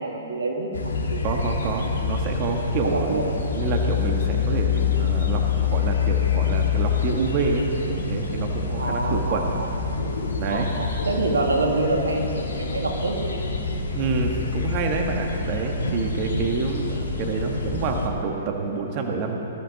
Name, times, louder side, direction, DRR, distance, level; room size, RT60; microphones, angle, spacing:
voice 1, 0.0-1.4 2.8-3.3 8.7-9.7 10.5-13.5, right 2 dB, 85° right, 2 dB, 2.1 m, -27 dB
sound 1, 0.7-18.1, left 5 dB, 75° left, 2.0 m, -26 dB
voice 2, 1.2-3.2 3.5-9.5 10.4-10.7 13.9-19.4, right 4 dB, 40° right, 2 dB, 1.6 m, -27 dB
20.0 x 13.0 x 4.2 m, 3.0 s
hypercardioid pair, 125°, 0 cm